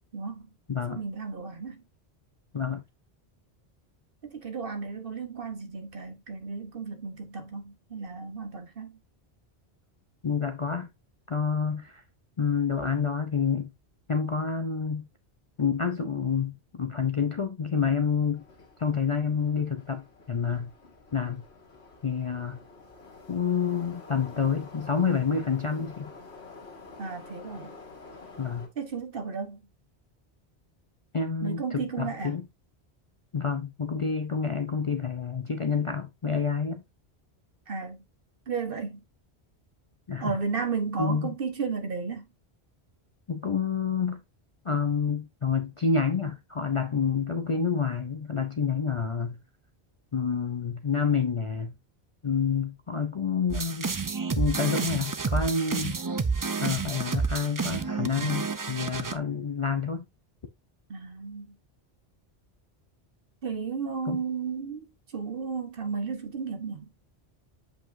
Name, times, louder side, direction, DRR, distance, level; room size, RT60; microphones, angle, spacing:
voice 1, 0.1-0.5 0.9-1.8 4.2-9.0 27.0-27.7 28.8-29.7 31.4-32.4 37.7-38.0 38.5-39.0 40.2-42.3 60.9-61.5 63.4-66.9, right 5 dB, 60° right, 1.4 m, -34 dB
voice 2, 0.7-1.0 2.5-2.8 10.2-10.9 11.3-12.0 12.4-13.7 14.1-15.1 15.6-18.4 18.8-20.7 21.1-21.5 22.0-22.6 23.3-26.1 28.4-28.7 31.1-32.5 33.3-36.8 40.1-40.4 41.0-41.3 43.3-44.2 44.6-49.4 50.1-51.7 52.2-53.9 54.4-56.0 56.6-60.1 64.1-64.2, left 6 dB, 40° left, 0.5 m, -28 dB
Subway metro underground, 18.3-28.7, left 3 dB, 80° left, 2.0 m, -48 dB
sound 1, 53.5-59.1, right 5 dB, 35° right, 0.3 m, -30 dB
7.7 x 5.1 x 2.6 m
omnidirectional pair, 1.1 m